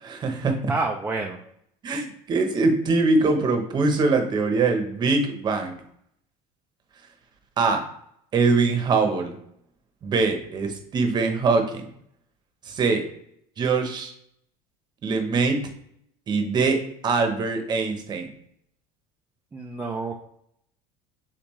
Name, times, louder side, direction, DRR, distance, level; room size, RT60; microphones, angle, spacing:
voice 1, 0.0-0.6 1.8-5.8 7.6-7.8 8.3-9.3 10.0-11.8 12.7-13.0 13.6-14.1 15.0-15.7 16.3-18.3, right 4 dB, 30° right, 6 dB, 0.9 m, -23 dB
voice 2, 0.7-1.4 19.5-20.2, right 3 dB, 10° right, 0 dB, 0.4 m, -28 dB
7.0 x 2.4 x 3.1 m, 0.71 s
cardioid pair, 145°, 15 cm